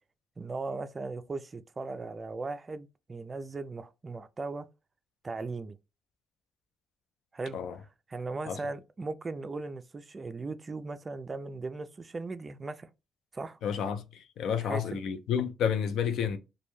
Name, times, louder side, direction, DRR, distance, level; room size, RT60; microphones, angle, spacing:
voice 1, 0.4-4.7 5.2-5.8 7.3-7.6 8.1-12.9 13.3-13.6 14.5-15.0, right 3 dB, 30° right, 0.3 m, -38 dB
voice 2, 13.6-16.4, left 7 dB, 75° left, 0.4 m, -30 dB
2.2 x 2.1 x 3.0 m
cardioid pair, 90°, 0 cm